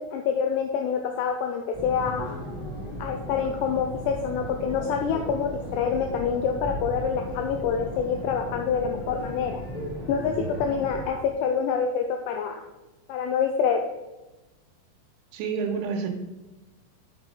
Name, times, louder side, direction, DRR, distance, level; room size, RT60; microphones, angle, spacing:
voice 1, 0.0-2.4 3.0-9.6 10.1-12.6 13.1-13.8, left 6 dB, 90° left, 4 dB, 2.4 m, -26 dB
sound 1, 1.7-11.1, equal, 35° left, 0.6 m, -36 dB
voice 2, 15.3-16.1, right 5 dB, 90° right, 2 dB, 3.5 m, -28 dB
6.7 x 6.1 x 5.2 m, 1.1 s
omnidirectional pair, 5.6 m